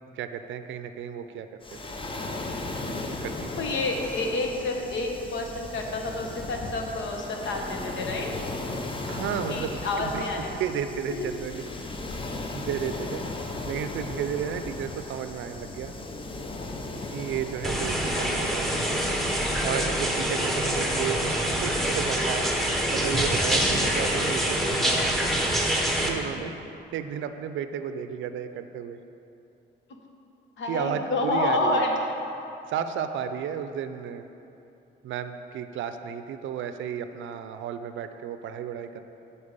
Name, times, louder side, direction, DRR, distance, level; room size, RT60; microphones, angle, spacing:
voice 1, 0.1-1.8 3.2-3.6 9.1-10.2 10.6-11.6 12.5-13.2 13.7-15.9 17.1-18.8 19.6-22.5 22.9-25.2 26.0-26.5 26.9-29.0 30.7-31.8 32.7-34.3 35.0-39.0, right 8 dB, 75° right, 9 dB, 0.5 m, -33 dB
Waves surf, 1.6-19.7, left 2 dB, 25° left, 0.7 m, -36 dB
voice 2, 3.6-8.3 9.5-10.6 11.1-11.3 18.1-18.5 19.9-20.0 26.1-26.5 30.6-31.9, left 2 dB, 70° left, 1 dB, 1.2 m, -29 dB
sound 1, 17.6-26.1, equal, ahead, 1.0 m, -25 dB
8.6 x 4.3 x 6.7 m, 2.8 s
cardioid pair, 90°, 20 cm